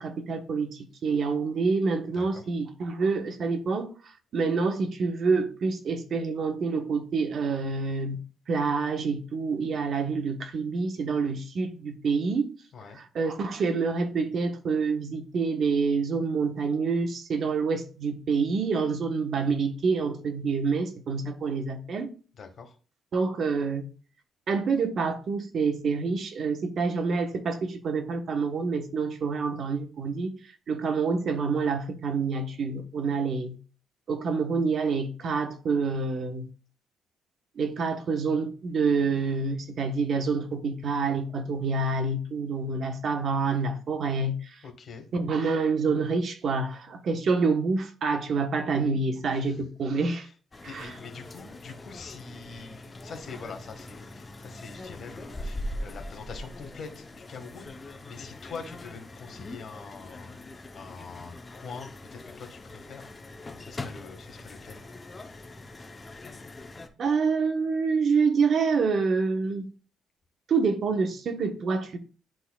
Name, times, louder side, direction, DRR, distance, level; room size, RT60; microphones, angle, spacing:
voice 1, 0.0-3.9 4.3-8.2 8.5-12.5 12.9-22.1 23.1-23.9 24.5-30.3 30.7-33.6 34.1-36.4 37.6-44.6 45.1-50.3 50.6-50.9 67.0-69.7 70.5-72.0, right 4 dB, 60° right, 1.2 m, -27 dB
voice 2, 22.4-22.7 44.6-45.1 49.3-49.6 50.2-50.3 50.6-60.4 60.7-64.8, left 5 dB, 55° left, 1.7 m, -44 dB
sound 1, 50.5-66.9, left 1 dB, 25° left, 0.8 m, -42 dB
11.0 x 3.8 x 2.4 m
cardioid pair, 90°, 0 cm